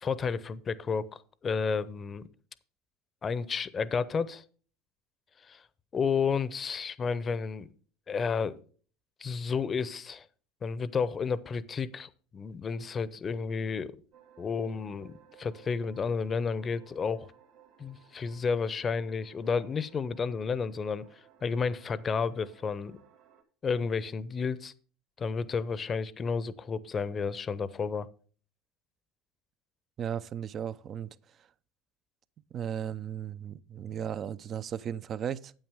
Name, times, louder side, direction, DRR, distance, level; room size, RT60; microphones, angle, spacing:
voice 1, 0.0-2.3 3.2-4.4 5.5-5.6 5.9-7.7 8.1-8.6 9.2-10.3 10.6-14.0 14.4-17.3 17.8-21.1 21.4-23.0 23.6-24.7 25.2-28.1, left 5 dB, 30° left, 0.7 m, -31 dB
sound 1, 14.1-23.4, right 9 dB, 60° right, 2.4 m, -59 dB
voice 2, 30.0-31.2 32.5-35.5, right 9 dB, 40° right, 0.5 m, -35 dB
9.0 x 8.5 x 3.5 m
hypercardioid pair, 85°, 0 cm